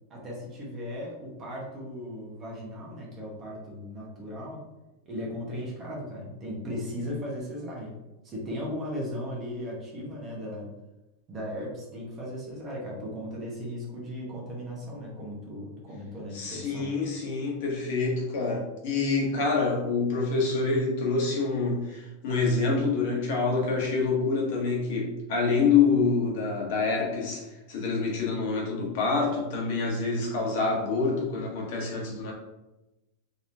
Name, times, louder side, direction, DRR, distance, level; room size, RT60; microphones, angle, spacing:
voice 1, 0.0-4.6 5.1-7.9 8.2-10.7 11.3-16.9, equal, 20° right, -3 dB, 1.0 m, -37 dB
voice 2, 16.3-32.3, left 4 dB, 55° left, -2 dB, 1.1 m, -26 dB
3.9 x 3.0 x 2.6 m, 0.99 s
supercardioid pair, 160°, 0 cm